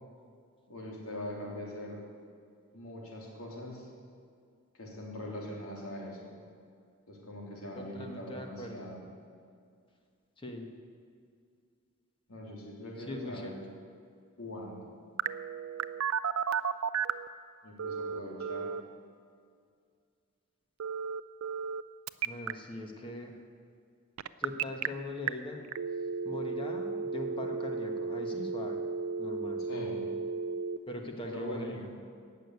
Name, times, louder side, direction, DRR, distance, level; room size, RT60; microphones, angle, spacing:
voice 1, 0.7-2.0 2.7-3.9 4.7-6.3 7.1-9.0 12.3-13.5 14.4-14.8 17.6-18.7 29.7-30.1 31.2-31.9, left 1 dB, 75° left, -2 dB, 3.4 m, -42 dB
voice 2, 7.8-8.9 10.4-10.7 13.0-13.5 22.2-23.3 24.4-25.6 26.2-28.9 29.2-29.6 30.9-32.0, left 1 dB, 25° left, 3 dB, 1.3 m, -41 dB
Telephone, 15.2-17.3 17.8-18.8 20.8-21.8 22.1-22.5 24.2-24.9 25.3-25.4 25.7-30.8, right 6 dB, 70° right, 0.4 m, -33 dB
17.5 x 6.7 x 8.3 m, 2.2 s
head